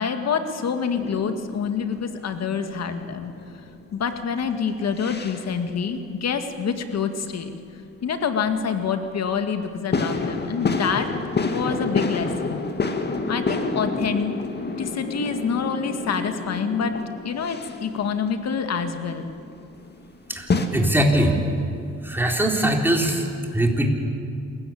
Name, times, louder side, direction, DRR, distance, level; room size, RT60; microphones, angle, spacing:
voice 1, 0.0-3.3 3.9-7.5 8.0-11.1 11.4-12.6 13.3-14.4 14.8-19.3, left 6 dB, 60° left, 7 dB, 2.0 m, -26 dB
sound 1, 0.9-4.5 4.8-5.5 8.5-8.6 9.9-20.7, left 3 dB, 35° left, 2.1 m, -29 dB
voice 2, 20.3-21.4 22.0-23.3 23.5-23.9, right 1 dB, 5° right, 1 dB, 3.7 m, -21 dB
27.5 x 15.0 x 8.7 m, 2.4 s
cardioid pair, 90°, 30 cm